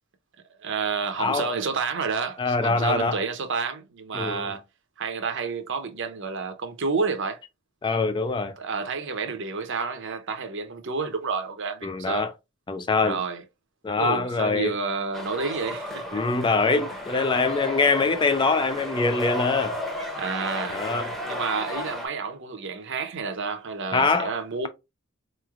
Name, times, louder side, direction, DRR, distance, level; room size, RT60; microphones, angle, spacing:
voice 1, 0.6-4.6 5.0-7.4 8.6-12.3 13.0-13.4 14.0-16.2 20.2-20.8 21.3-24.7, right 4 dB, 55° right, 0.7 m, -30 dB
voice 2, 1.2-1.5 2.4-3.2 4.1-4.5 7.8-8.6 11.8-12.3 12.7-13.2 13.8-14.7 16.1-19.8 20.7-21.1 23.9-24.3, left 4 dB, 20° left, 0.3 m, -24 dB
sound 1, 15.1-22.1, left 1 dB, ahead, 0.8 m, -33 dB
4.1 x 3.1 x 2.4 m
head